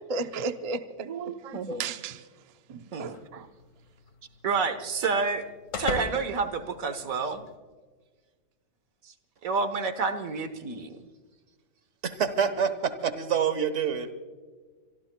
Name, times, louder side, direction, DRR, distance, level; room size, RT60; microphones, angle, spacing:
voice 1, 0.1-2.2 2.7-3.5, right 3 dB, 35° right, 8 dB, 0.6 m, -34 dB
voice 2, 1.5-1.9 2.9-3.2 4.4-5.5 5.8-7.4 9.4-11.1, right 4 dB, 90° right, 9 dB, 1.6 m, -29 dB
sound 1, 3.1-7.5, left 4 dB, 70° left, 1.7 m, -40 dB
voice 3, 12.0-14.1, right 7 dB, 60° right, 11 dB, 1.5 m, -27 dB
25.5 x 24.0 x 2.3 m, 1.4 s
omnidirectional pair, 1.4 m